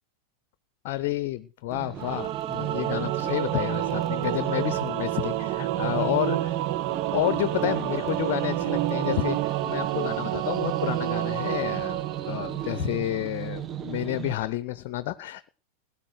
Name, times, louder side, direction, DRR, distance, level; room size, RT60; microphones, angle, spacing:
voice 1, 0.8-6.6 7.1-15.5, left 15 dB, 50° left, 17 dB, 0.7 m, -30 dB
sound 1, 1.7-14.4, right 11 dB, 25° right, 1.0 m, -35 dB
Singing / Musical instrument, 2.0-13.2, right 14 dB, 45° right, 0.7 m, -29 dB
16.5 x 9.8 x 6.4 m, 0.40 s
figure-of-eight pair, 90°, 0 cm